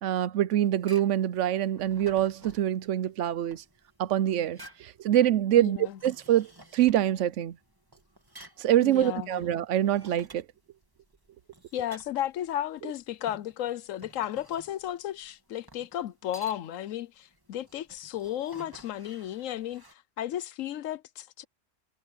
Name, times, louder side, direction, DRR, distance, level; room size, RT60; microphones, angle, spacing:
voice 1, 0.0-3.6 4.0-5.8 6.0-6.5 6.7-7.5 8.6-10.4, right 11 dB, 75° right, 0.9 m, -25 dB
sound 1, 0.6-19.9, right 1 dB, 15° right, 3.0 m, -54 dB
voice 2, 5.6-6.0 8.8-9.4 11.7-21.4, left 11 dB, 85° left, 1.1 m, -34 dB
omnidirectional pair, 1.3 m